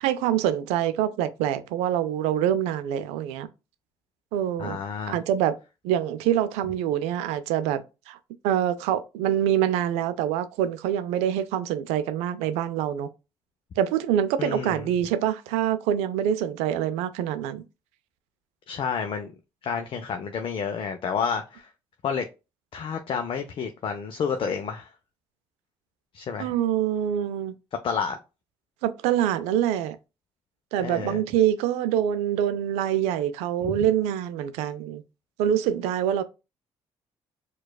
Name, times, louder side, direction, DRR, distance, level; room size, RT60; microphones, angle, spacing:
voice 1, 0.0-3.5 4.3-4.8 5.1-5.5 5.8-8.2 8.4-13.1 13.8-17.6 26.4-27.5 28.8-30.0 30.7-35.0 35.4-36.2, right 10 dB, 90° right, 0.4 m, -25 dB
voice 2, 4.6-5.2 14.4-14.8 18.7-19.3 19.6-21.7 22.0-22.3 22.7-24.9 26.1-26.5 27.8-28.2 30.8-31.2 33.6-33.8, left 6 dB, 55° left, 0.5 m, -30 dB
4.6 x 2.3 x 2.2 m
supercardioid pair, 65°, 11 cm